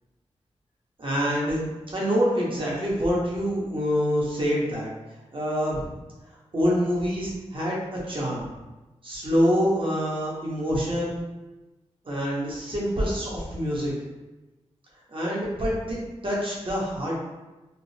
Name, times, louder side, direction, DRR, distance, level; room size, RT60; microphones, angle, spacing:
voice 1, 1.0-4.9 5.3-5.9 6.5-8.5 9.0-11.1 12.0-13.9 15.1-16.0 16.2-17.2, equal, 45° right, -5 dB, 1.2 m, -26 dB
3.7 x 2.1 x 2.8 m, 1.1 s
cardioid pair, 50°, 12 cm